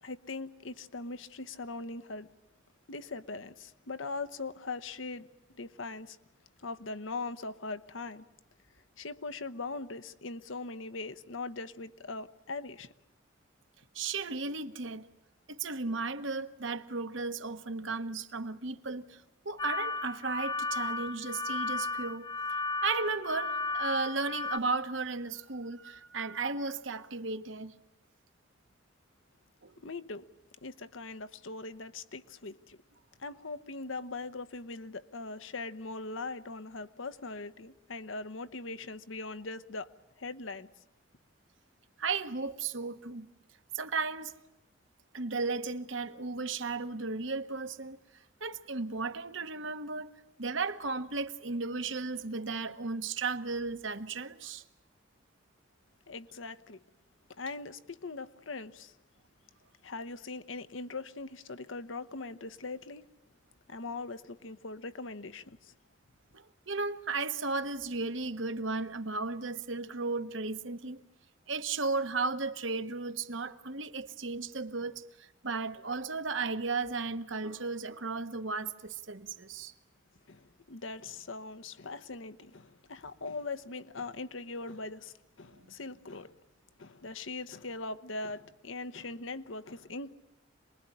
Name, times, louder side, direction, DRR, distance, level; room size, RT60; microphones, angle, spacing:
voice 1, 0.0-2.3 2.9-6.2 6.6-8.2 9.0-12.9 29.8-30.3 30.6-32.8 33.2-40.7 56.1-56.8 57.3-59.0 59.8-63.1 63.7-65.7 80.3-86.4 86.8-90.1, left 3 dB, 85° left, 1.1 m, -41 dB
voice 2, 13.9-15.1 15.5-22.3 22.8-27.7 29.6-29.7 42.0-43.3 43.7-44.3 45.1-48.0 48.4-50.1 50.4-54.6 66.3-71.0 71.5-79.7 85.6-85.7, right 4 dB, 75° right, 1.4 m, -35 dB
sound 1, 19.6-24.6, left 3 dB, 20° left, 1.0 m, -34 dB
27.0 x 21.0 x 10.0 m
head